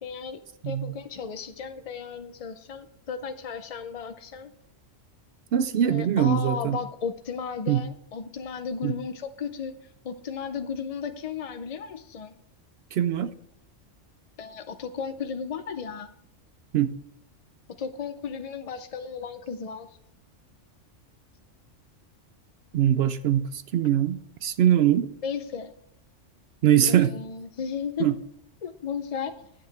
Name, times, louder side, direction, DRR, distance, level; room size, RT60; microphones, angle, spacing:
voice 1, 0.0-4.5 5.9-9.7 10.0-12.3 14.4-16.1 17.8-19.9 25.2-25.7 26.9-28.1 28.6-29.5, left 6 dB, 55° left, 0.4 m, -35 dB
voice 2, 0.6-0.9 5.5-6.8 7.7-7.8 8.8-9.0 12.9-13.3 16.7-16.9 22.7-25.1 26.6-27.2 28.0-28.2, right 10 dB, 65° right, 0.7 m, -22 dB
9.9 x 7.8 x 4.6 m
omnidirectional pair, 1.3 m